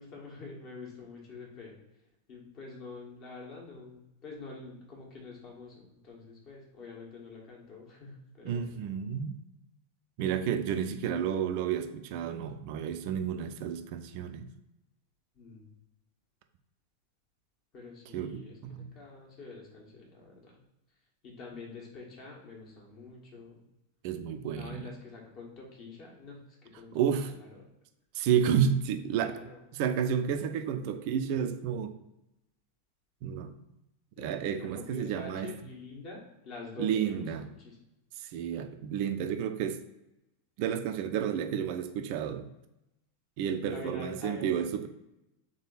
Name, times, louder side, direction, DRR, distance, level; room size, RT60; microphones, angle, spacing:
voice 1, 0.0-1.8 2.3-8.8 15.3-15.7 17.7-20.6 21.2-23.6 24.5-27.6 29.2-29.6 34.2-37.3 37.6-37.8 43.7-44.5, left 3 dB, 40° left, -2 dB, 1.5 m, -46 dB
voice 2, 8.4-9.4 10.2-14.5 18.1-18.9 24.0-24.8 26.9-27.3 28.1-29.4 29.7-32.0 33.2-33.5 34.2-35.5 36.8-37.5 38.2-39.8 40.6-42.5 43.4-44.9, right 8 dB, 45° right, 8 dB, 0.4 m, -31 dB
3.6 x 3.5 x 4.0 m, 0.90 s
figure-of-eight pair, 90°, 0 cm